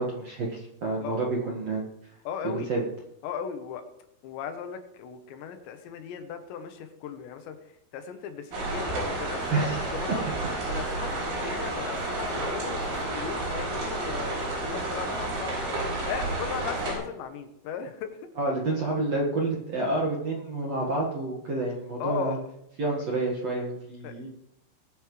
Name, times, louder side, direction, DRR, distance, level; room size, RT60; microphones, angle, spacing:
voice 1, 0.0-2.1 2.7-2.8 9.5-10.0 10.7-10.8 18.4-22.4 22.8-24.3, right 2 dB, 55° right, -2 dB, 1.9 m, -29 dB
voice 2, 2.2-2.7 3.2-3.9 4.2-10.2 10.7-15.7 16.1-18.3 22.0-22.4 24.0-24.3, left 7 dB, 75° left, 7 dB, 3.2 m, -37 dB
sound 1, 8.5-17.0, right 2 dB, 70° right, 7.4 m, -31 dB
21.5 x 9.3 x 3.2 m, 0.84 s
omnidirectional pair, 5.3 m